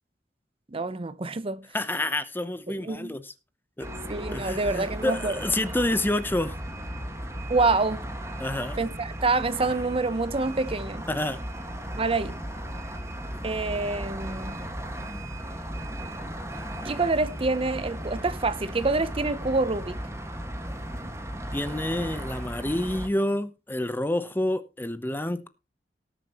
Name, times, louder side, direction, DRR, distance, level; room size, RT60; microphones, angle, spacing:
voice 1, 0.7-1.7 2.8-3.1 4.1-5.3 7.5-8.0 8.8-11.1 12.0-12.4 13.4-14.6 16.8-20.0, right 3 dB, 35° right, 0.7 m, -27 dB
voice 2, 1.7-3.3 3.8-3.9 4.3-6.6 8.4-8.8 11.1-11.4 13.3-13.4 21.5-25.5, left 1 dB, 10° left, 0.8 m, -28 dB
sound 1, 3.8-23.1, equal, 15° right, 1.7 m, -36 dB
18.5 x 7.4 x 3.0 m
head